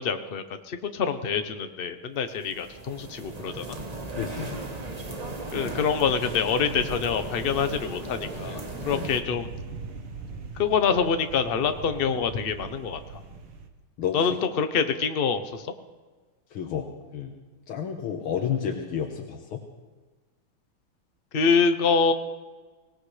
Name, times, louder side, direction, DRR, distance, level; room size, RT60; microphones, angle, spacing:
voice 1, 0.0-3.8 5.5-9.5 10.6-13.0 14.1-15.7 21.3-22.1, left 6 dB, 50° left, 8 dB, 0.6 m, -26 dB
sound 1, 2.4-9.2, right 2 dB, 25° right, 0.9 m, -36 dB
voice 2, 4.2-4.6 8.9-9.1 14.0-14.2 16.5-17.3 17.7-19.6, left 8 dB, 80° left, 3 dB, 2.0 m, -31 dB
sound 2, 6.6-13.7, right 4 dB, 75° right, 2.2 m, -41 dB
24.0 x 18.0 x 3.3 m, 1.3 s
omnidirectional pair, 2.3 m